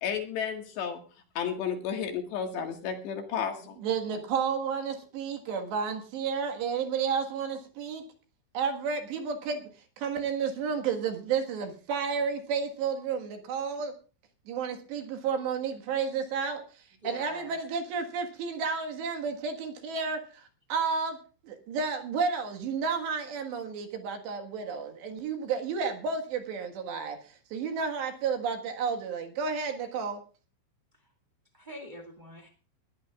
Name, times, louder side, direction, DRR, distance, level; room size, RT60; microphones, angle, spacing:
voice 1, 0.0-1.0 1.4-3.8, left 7 dB, 65° left, 4 dB, 3.6 m, -32 dB
voice 2, 3.8-8.0 8.5-9.7 10.0-13.9 14.5-16.6 17.0-21.2 21.4-27.2 27.5-30.2, right 6 dB, 65° right, 4 dB, 3.5 m, -31 dB
voice 3, 17.0-17.5 31.5-32.5, left 1 dB, 50° right, 0 dB, 0.5 m, -44 dB
21.5 x 15.0 x 2.4 m, 0.36 s
omnidirectional pair, 5.9 m